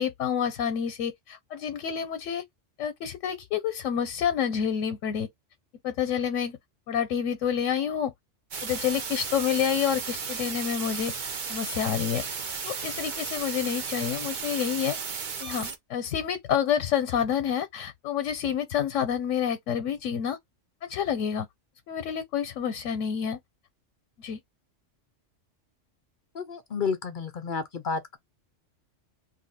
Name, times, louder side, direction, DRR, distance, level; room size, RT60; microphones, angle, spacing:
voice 1, 0.0-2.4 2.8-5.3 5.8-6.6 6.9-8.1 8.6-11.1 11.5-12.2 12.6-15.0 15.4-20.4 20.8-21.5 21.9-23.4 24.2-24.4, left 8 dB, 85° left, 1.0 m, -28 dB
sound 1, 8.5-15.8, right 5 dB, 45° right, 0.7 m, -34 dB
voice 2, 26.3-28.2, left 5 dB, 55° left, 0.6 m, -31 dB
2.7 x 2.7 x 4.1 m
omnidirectional pair, 1.3 m